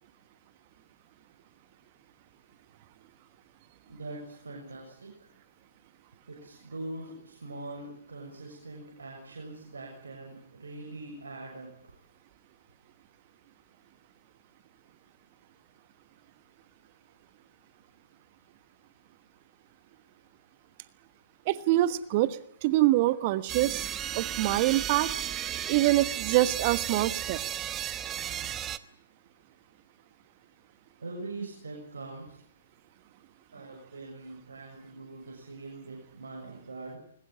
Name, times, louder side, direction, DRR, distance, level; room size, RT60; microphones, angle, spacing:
voice 1, 3.9-5.3 6.3-12.0 31.0-32.3 33.5-37.0, right 2 dB, 75° right, 1 dB, 6.7 m, -42 dB
voice 2, 21.5-23.9 24.1-25.1 25.7-27.4, right 16 dB, 40° right, 14 dB, 1.3 m, -25 dB
sound 1, 23.5-28.8, right 11 dB, 20° right, 1.1 m, -34 dB
21.5 x 21.0 x 8.7 m, 0.66 s
figure-of-eight pair, 120°, 0 cm